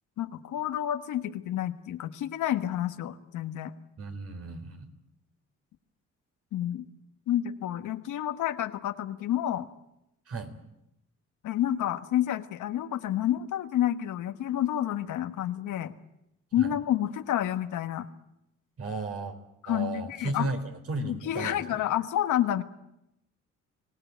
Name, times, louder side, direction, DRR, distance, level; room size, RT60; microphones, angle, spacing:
voice 1, 0.2-3.7 6.5-6.9 7.3-9.7 11.4-15.9 16.5-18.1 19.6-20.5 21.0-22.6, left 11 dB, 80° left, 9 dB, 1.5 m, -29 dB
voice 2, 4.0-4.9 10.3-10.5 16.6-16.7 18.8-19.4 19.7-20.6 20.9-21.6, right 3 dB, 50° right, 7 dB, 3.8 m, -34 dB
24.0 x 17.5 x 9.3 m, 0.87 s
cardioid pair, 90°, 30 cm